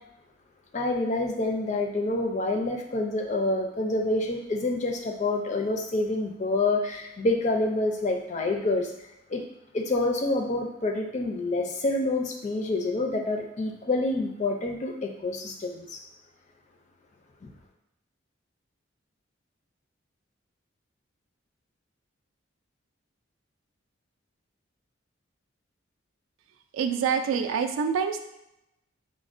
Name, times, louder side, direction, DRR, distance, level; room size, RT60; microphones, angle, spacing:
voice 1, 0.7-8.9 9.3-9.4 9.7-16.0, left 2 dB, 35° left, 3 dB, 0.4 m, -27 dB
voice 2, 26.7-28.3, right 6 dB, 80° right, 7 dB, 0.3 m, -26 dB
5.0 x 2.1 x 2.4 m, 0.85 s
head